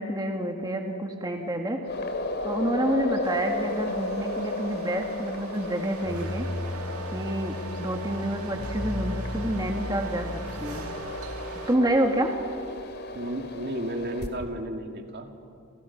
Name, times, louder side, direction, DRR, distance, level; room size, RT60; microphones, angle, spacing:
voice 1, 0.0-1.8 2.4-6.5 7.1-10.9 11.7-12.3, right 1 dB, 20° right, 3 dB, 1.9 m, -28 dB
sound 1, 1.8-14.3, left 2 dB, 50° left, 2.4 m, -35 dB
sound 2, 3.2-11.8, right 4 dB, 85° right, 1.9 m, -43 dB
sound 3, 6.0-11.4, left 1 dB, 20° left, 3.5 m, -36 dB
voice 2, 13.1-15.3, right 1 dB, 50° right, 5 dB, 2.4 m, -33 dB
29.0 x 29.0 x 6.0 m, 2.3 s
head